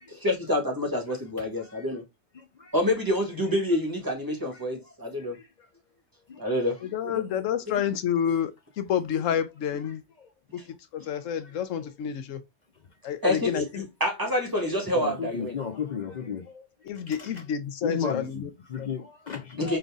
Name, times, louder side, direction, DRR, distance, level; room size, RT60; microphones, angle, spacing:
voice 1, 0.1-2.0 2.7-5.4 6.4-7.2 8.2-8.4 10.6-10.7 13.2-15.7 19.6-19.8, left 1 dB, 15° right, 1.3 m, -28 dB
voice 2, 6.8-8.5 8.8-10.0 10.5-10.6 10.9-12.4 13.0-13.9 16.9-18.5 18.8-18.9, left 8 dB, 85° left, 1.1 m, -29 dB
voice 3, 14.9-16.4 17.2-17.3 17.8-19.8, left 6 dB, 55° left, 0.5 m, -32 dB
3.9 x 3.2 x 3.5 m
omnidirectional pair, 1.3 m